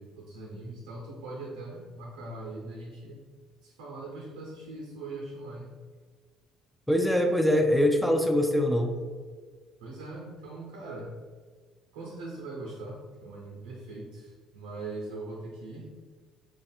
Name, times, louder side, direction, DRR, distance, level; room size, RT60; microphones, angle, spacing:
voice 1, 0.0-3.2 3.6-5.8 9.8-11.1 11.9-15.9, right 2 dB, 85° right, -2 dB, 0.6 m, -41 dB
voice 2, 6.9-8.9, equal, ahead, 4 dB, 0.4 m, -23 dB
3.2 x 2.4 x 4.2 m, 1.5 s
supercardioid pair, 75°, 0 cm